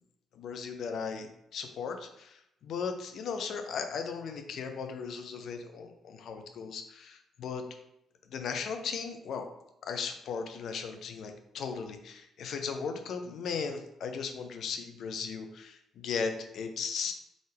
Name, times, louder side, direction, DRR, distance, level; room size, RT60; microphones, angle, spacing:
voice 1, 0.3-7.6 8.3-9.4 9.9-17.1, left 5 dB, 60° left, 5 dB, 0.6 m, -37 dB
3.8 x 3.7 x 3.4 m, 0.82 s
hypercardioid pair, 45°, 0 cm